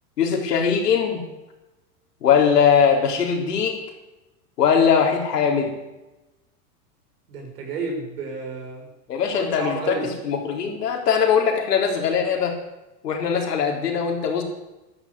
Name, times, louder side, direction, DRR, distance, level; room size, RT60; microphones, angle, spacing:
voice 1, 0.2-1.2 2.2-3.8 4.6-5.7 9.1-10.0 10.2-12.5 13.0-14.4, left 7 dB, 90° left, 3 dB, 3.9 m, -20 dB
voice 2, 7.3-8.9 9.3-10.1, right 4 dB, 80° right, 2 dB, 6.2 m, -31 dB
13.0 x 12.5 x 8.4 m, 1.0 s
hypercardioid pair, 110°, 46 cm